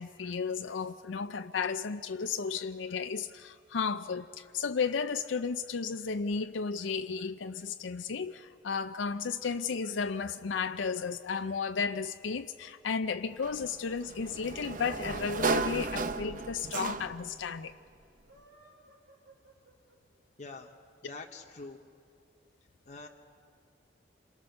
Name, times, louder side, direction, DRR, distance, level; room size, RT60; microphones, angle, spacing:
voice 1, 0.0-17.7, left 5 dB, 90° left, 0.5 m, -33 dB
sound 1, 13.1-16.4 16.7-16.8 17.0-17.1 18.1-20.2, right 2 dB, 75° right, 5.4 m, -61 dB
Sliding door, 13.4-17.4, right 4 dB, 45° right, 0.8 m, -34 dB
voice 2, 20.4-20.7 21.0-21.8 22.9-23.1, left 3 dB, 40° left, 1.0 m, -45 dB
27.5 x 22.5 x 6.6 m
head